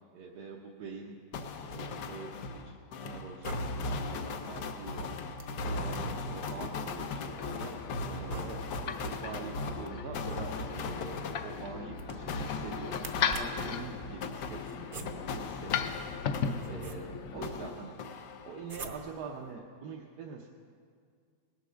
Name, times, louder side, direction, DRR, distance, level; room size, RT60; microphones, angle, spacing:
voice 1, 0.1-1.2 1.5-5.1 5.6-6.0 6.3-7.8 8.1-13.0 13.2-16.0 16.6-20.5, right 5 dB, 75° right, -1 dB, 1.5 m, -45 dB
sound 1, 1.3-17.1 17.4-18.8, left 3 dB, 80° left, 1.4 m, -38 dB
sound 2, 1.6-2.3 3.2-4.0 5.4-6.8 8.0-8.9 10.1-10.9 11.9-12.5 13.0-13.8 14.6-15.5 16.2-17.4 18.6-19.3, right 4 dB, 40° right, 0.8 m, -47 dB
sound 3, 7.1-17.7, left 6 dB, 60° left, 1.0 m, -38 dB
19.0 x 8.1 x 6.3 m, 2.1 s
omnidirectional pair, 1.8 m